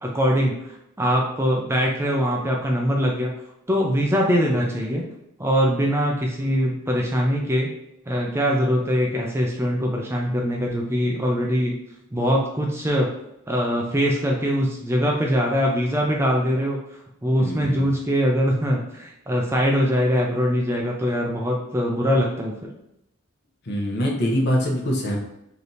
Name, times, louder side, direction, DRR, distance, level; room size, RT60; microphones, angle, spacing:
voice 1, 0.0-3.3 3.7-5.0 5.4-7.7 8.1-11.8 12.1-13.1 13.5-16.8 17.2-22.7, equal, 10° right, -1 dB, 0.4 m, -22 dB
voice 2, 17.4-17.9 23.7-25.2, equal, 50° left, -1 dB, 0.9 m, -24 dB
3.3 x 2.8 x 4.0 m, 0.82 s
head